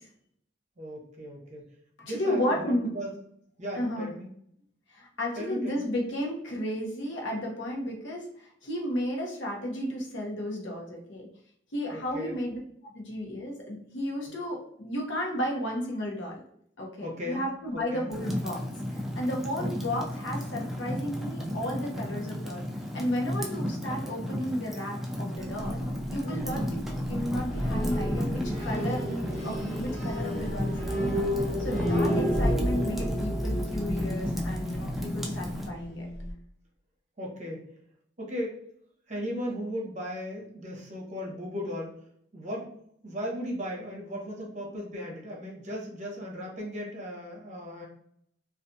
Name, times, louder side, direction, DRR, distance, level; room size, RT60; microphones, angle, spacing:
voice 1, 0.8-1.6 2.0-3.1 3.6-4.3 5.4-5.9 11.9-12.4 14.3-14.4 17.0-17.4 17.7-18.1 19.6-19.8 26.2-26.7 32.2-32.7 37.2-37.7 38.2-38.5 39.1-42.0 42.3-42.7 43.0-47.9, equal, 40° right, -2 dB, 0.8 m, -37 dB
voice 2, 2.0-2.9 3.7-4.1 4.9-11.3 11.7-12.6 12.9-16.4 16.8-18.6 18.9-22.7 22.9-25.8 26.1-29.1 29.4-31.3 31.6-36.1, equal, 75° left, -1 dB, 0.8 m, -33 dB
Fire, 18.1-35.7, equal, ahead, 0.3 m, -34 dB
sound 1, 25.4-36.3, equal, 15° left, 1.1 m, -31 dB
2.4 x 2.3 x 2.6 m, 0.69 s
head